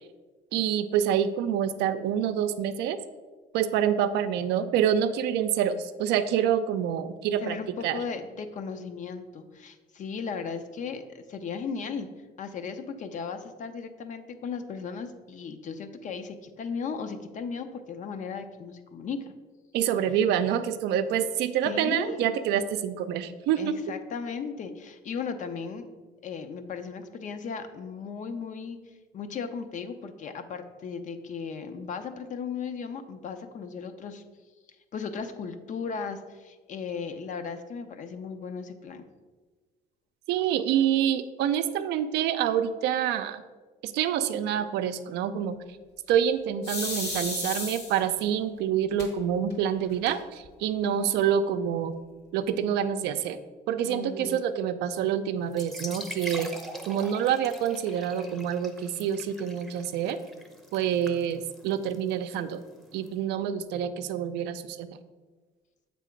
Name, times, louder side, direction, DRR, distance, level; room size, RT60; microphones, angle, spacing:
voice 1, 0.5-3.0 3.5-7.6 7.8-8.0 19.7-23.7 40.3-43.4 43.8-45.6 46.1-52.0 52.3-53.4 53.7-56.5 56.9-60.2 60.7-62.6 62.9-65.0, right 9 dB, 85° right, 10 dB, 0.5 m, -27 dB
voice 2, 7.4-12.1 12.4-19.2 21.6-22.3 23.6-25.9 26.2-28.8 29.1-34.2 34.9-39.0 50.8-51.2 53.8-54.4, left 5 dB, 50° left, 9 dB, 0.6 m, -36 dB
sound 1, 46.6-48.2 49.0-49.1 49.5-49.6 49.9-50.5, left 2 dB, 85° left, 1.8 m, -33 dB
sound 2, 55.5-63.1, equal, ahead, 0.7 m, -43 dB
7.5 x 3.4 x 5.1 m, 1.3 s
cardioid pair, 110°, 17 cm